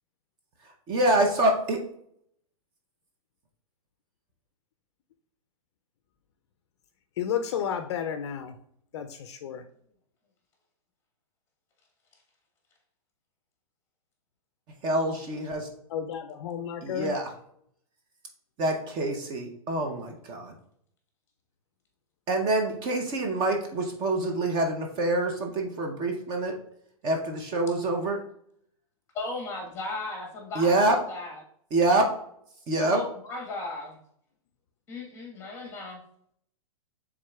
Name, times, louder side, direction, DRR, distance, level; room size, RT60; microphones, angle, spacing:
voice 1, 0.9-1.8 14.8-15.7 16.8-17.3 18.6-20.5 22.3-26.6 27.0-28.2 30.6-31.0 31.7-32.1 32.7-33.0, right 2 dB, 25° right, 2 dB, 0.6 m, -26 dB
voice 2, 7.2-8.6 8.9-9.6 15.9-17.1, left 8 dB, 50° left, 8 dB, 0.4 m, -32 dB
voice 3, 29.1-31.4 32.8-34.0 34.9-36.0, left 2 dB, 15° left, 1 dB, 1.3 m, -36 dB
6.3 x 3.5 x 2.3 m, 0.68 s
hypercardioid pair, 145°, 18 cm